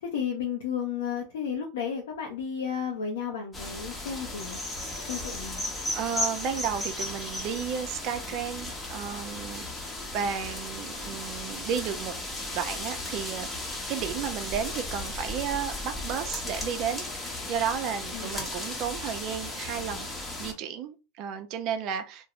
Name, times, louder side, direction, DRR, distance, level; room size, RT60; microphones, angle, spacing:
voice 1, 0.0-4.6 5.1-5.7 18.1-18.4, left 7 dB, 85° left, 0.6 m, -33 dB
sound 1, 3.5-20.5, left 2 dB, 15° left, 0.8 m, -35 dB
voice 2, 5.9-9.7 10.1-12.1 12.5-20.1 20.4-22.3, right 8 dB, 45° right, 0.5 m, -33 dB
2.5 x 2.0 x 2.9 m
supercardioid pair, 125°, 0 cm